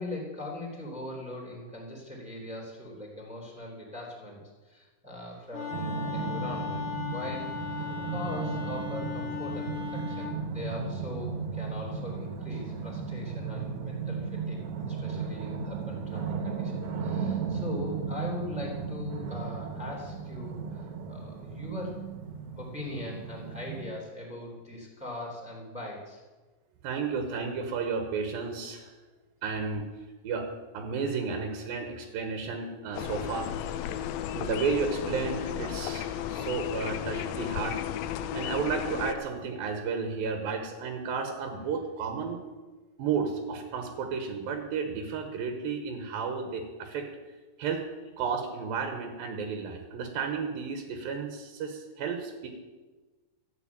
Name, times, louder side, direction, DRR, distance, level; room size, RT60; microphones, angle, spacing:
voice 1, 0.0-4.4 4.6-14.6 14.9-22.0 22.6-26.2, left 1 dB, ahead, -1 dB, 3.0 m, -40 dB
Wind instrument woodwind instrument, 5.5-10.4, left 7 dB, 70° left, 3.0 m, -37 dB
sound 1, 5.7-23.8, right 5 dB, 60° right, 2.6 m, -35 dB
voice 2, 26.8-28.9 29.4-29.9 30.2-33.8 34.3-37.8 38.3-42.4 43.0-47.1 47.6-47.9 48.2-52.5, right 5 dB, 85° right, 5 dB, 3.1 m, -32 dB
sound 2, 32.9-39.2, left 10 dB, 90° left, 2.4 m, -34 dB
13.5 x 8.1 x 8.9 m, 1.3 s
omnidirectional pair, 4.1 m